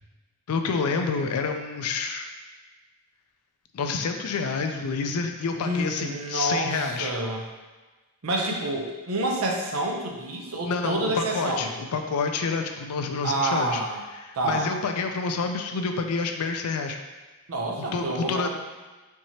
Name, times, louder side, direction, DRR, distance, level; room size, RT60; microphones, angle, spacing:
voice 1, 0.5-2.3 3.7-7.1 10.7-13.8 14.3-17.0 17.8-18.5, left 4 dB, 85° left, 5 dB, 0.4 m, -28 dB
voice 2, 5.6-7.4 8.2-11.8 13.2-14.0 14.3-14.7 17.5-18.5, right 1 dB, 70° right, 0 dB, 0.7 m, -28 dB
4.5 x 2.8 x 2.8 m, 1.2 s
head